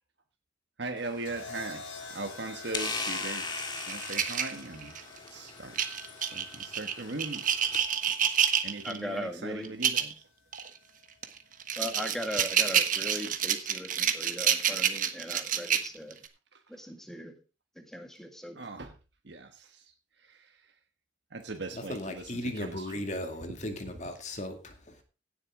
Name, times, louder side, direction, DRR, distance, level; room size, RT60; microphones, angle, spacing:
voice 1, 0.8-4.9 5.3-5.8 6.2-7.5 8.6-10.2 16.5-16.6 18.5-19.0 19.2-19.9 20.2-20.7 21.3-23.0, right 2 dB, 60° right, 1.3 m, -40 dB
sound 1, 1.0-7.8, left 3 dB, 25° left, 1.9 m, -40 dB
sound 2, 1.2-9.4 10.6-11.0, left 4 dB, 90° left, 3.3 m, -48 dB
sound 3, 3.6-5.2 5.8-9.0 9.6-10.1 10.5-10.7 11.2-16.3, right 8 dB, 45° right, 1.3 m, -28 dB
voice 2, 8.8-9.7 11.8-16.2 16.7-17.4 17.8-18.6, equal, ahead, 1.9 m, -39 dB
voice 3, 21.7-25.0, left 1 dB, 40° left, 2.3 m, -36 dB
16.5 x 8.0 x 3.8 m
head